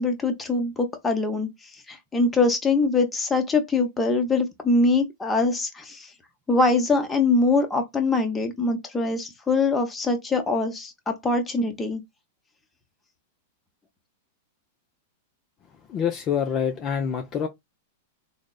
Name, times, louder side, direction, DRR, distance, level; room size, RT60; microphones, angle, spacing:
voice 1, 0.0-6.1 6.5-12.0, left 3 dB, 15° left, 0.7 m, -23 dB
voice 2, 15.9-17.5, left 8 dB, 35° left, 0.4 m, -26 dB
3.3 x 2.0 x 2.3 m
hypercardioid pair, 110°, 0 cm